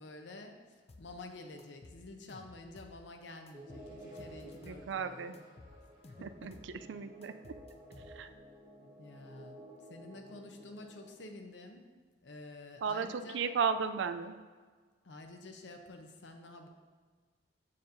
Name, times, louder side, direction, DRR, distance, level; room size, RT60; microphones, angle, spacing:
voice 1, 0.0-5.5 6.2-6.5 9.0-9.6 9.9-11.8 12.2-13.5 15.0-16.7, left 2 dB, 70° left, 4 dB, 0.7 m, -50 dB
sound 1, 0.9-1.1 1.6-3.0 3.5-4.9 5.3-6.8 7.2-8.4, left 2 dB, 35° left, 0.4 m, -55 dB
sound 2, 3.5-11.1, right 1 dB, 20° right, 1.2 m, -53 dB
voice 2, 4.6-5.4 6.2-6.5 6.9-7.5 8.2-8.3 12.8-14.4, right 6 dB, 75° right, 11 dB, 0.4 m, -34 dB
7.0 x 6.7 x 2.6 m, 1.5 s
head